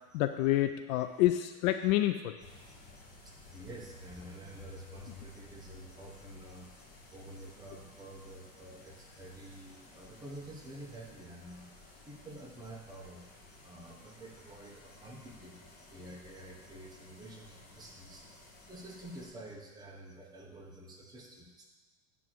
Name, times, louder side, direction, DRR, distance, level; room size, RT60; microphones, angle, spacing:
voice 1, 0.1-2.3, left 14 dB, 65° left, 9 dB, 0.5 m, -28 dB
sound 1, 2.4-19.3, left 2 dB, 20° left, 1.4 m, -55 dB
voice 2, 3.2-11.7 12.0-21.6, right 1 dB, 10° right, -1 dB, 0.9 m, -49 dB
8.3 x 3.7 x 6.1 m, 1.2 s
supercardioid pair, 145°, 46 cm